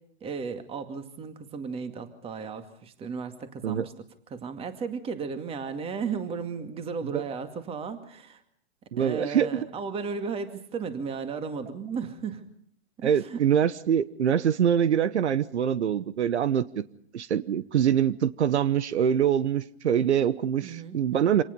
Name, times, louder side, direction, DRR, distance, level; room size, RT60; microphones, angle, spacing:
voice 1, 0.2-3.9 4.3-8.4 9.0-12.4 13.0-13.4 20.6-21.4, right 5 dB, 15° right, 9 dB, 2.3 m, -35 dB
voice 2, 8.9-9.7 13.0-16.8 17.1-21.4, right 9 dB, 85° right, 17 dB, 1.1 m, -24 dB
26.5 x 18.5 x 5.3 m, 0.67 s
hypercardioid pair, 140°, 33 cm